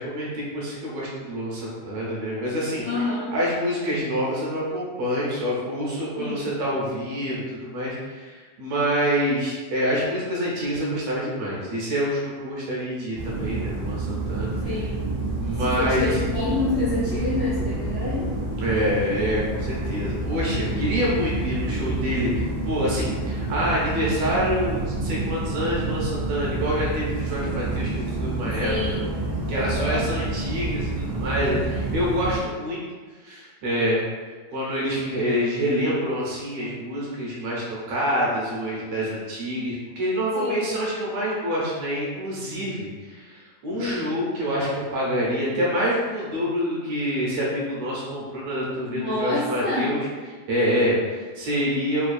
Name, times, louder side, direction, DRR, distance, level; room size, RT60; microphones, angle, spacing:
voice 1, 0.0-14.8 15.4-16.2 18.6-28.7 29.5-32.8 33.2-34.0 34.5-50.1 50.5-52.1, equal, 75° right, -5 dB, 1.8 m, -26 dB
voice 2, 2.9-3.3 6.2-6.4 14.6-15.1 15.6-18.5 28.6-29.1 29.5-30.0 40.3-40.7 43.7-44.1 48.9-49.9, left 2 dB, 75° left, -10 dB, 1.2 m, -28 dB
sound 1, 13.1-32.4, right 2 dB, 90° right, 0.5 m, -28 dB
4.6 x 2.2 x 2.5 m, 1.5 s
omnidirectional pair, 3.3 m